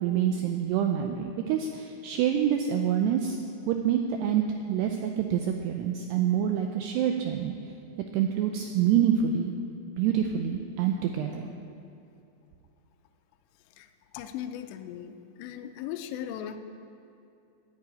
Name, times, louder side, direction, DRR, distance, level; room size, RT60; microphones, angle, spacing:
voice 1, 0.0-3.4 3.7-7.5 8.1-9.5 10.0-11.5, right 9 dB, 85° right, 4 dB, 2.3 m, -26 dB
voice 2, 13.8-16.6, left 10 dB, 85° left, 7 dB, 2.5 m, -38 dB
9.8 x 9.6 x 8.8 m, 2.6 s
omnidirectional pair, 5.5 m